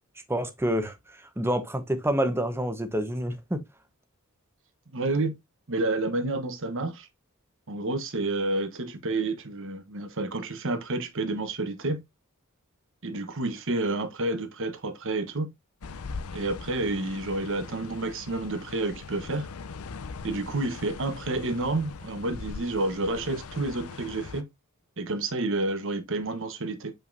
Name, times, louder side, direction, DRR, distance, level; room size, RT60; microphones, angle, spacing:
voice 1, 0.3-0.9 1.4-3.6, equal, 10° right, 1.0 m, -27 dB
voice 2, 4.9-5.3 5.7-7.1 7.7-12.0 13.0-15.5 16.3-19.5 20.2-24.5 25.0-26.9, right 2 dB, 60° right, 1.1 m, -29 dB
sound 1, 15.8-24.4, left 4 dB, 75° left, 0.6 m, -41 dB
7.0 x 5.6 x 2.6 m
head